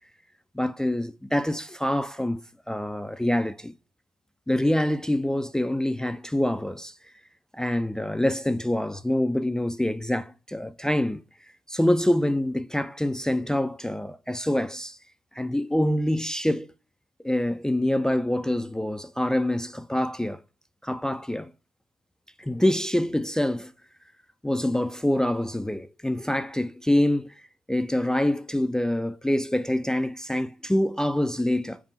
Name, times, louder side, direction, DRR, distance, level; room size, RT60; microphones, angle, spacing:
voice 1, 0.5-2.4 2.7-3.7 4.5-6.9 7.5-11.2 11.7-15.0 15.3-16.7 17.2-20.4 20.8-21.5 22.4-23.7 24.4-27.3 27.7-31.8, left 1 dB, 5° left, 0.4 m, -25 dB
4.6 x 3.7 x 5.5 m
supercardioid pair, 65°, 12 cm